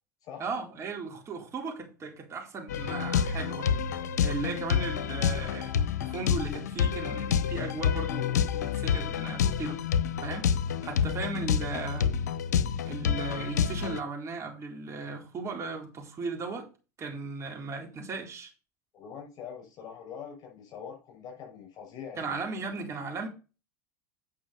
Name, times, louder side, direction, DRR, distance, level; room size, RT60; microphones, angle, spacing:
voice 1, 0.4-3.7 4.2-5.7 6.0-9.8 10.2-10.5 10.8-12.1 12.9-16.7 17.0-18.5 22.2-23.3, right 4 dB, 30° right, 3.9 m, -36 dB
sound 1, 2.7-14.0, left 7 dB, 75° left, 0.7 m, -28 dB
voice 2, 18.9-22.4, left 7 dB, 45° left, 6.0 m, -43 dB
8.8 x 6.0 x 5.5 m
hypercardioid pair, 80°, 9 cm